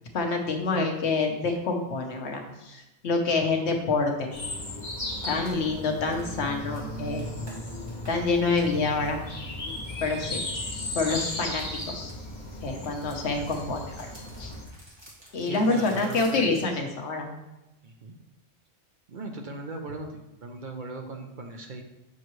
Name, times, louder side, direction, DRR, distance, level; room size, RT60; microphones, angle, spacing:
voice 1, 0.1-4.3 5.3-7.2 8.1-9.2 9.6-9.7 10.0-10.4 10.9-12.1 12.6-14.1 14.4-14.5 15.3-17.3, left 3 dB, 75° left, 3 dB, 1.2 m, -27 dB
sound 1, 4.3-14.6, left 1 dB, 40° left, 1.3 m, -36 dB
sound 2, 5.1-10.5 10.9-16.7, equal, 25° right, 1.8 m, -51 dB
voice 2, 15.4-16.5 17.8-18.1 19.1-21.8, right 3 dB, 50° right, 3 dB, 0.7 m, -39 dB
7.1 x 5.6 x 3.1 m, 0.96 s
omnidirectional pair, 1.2 m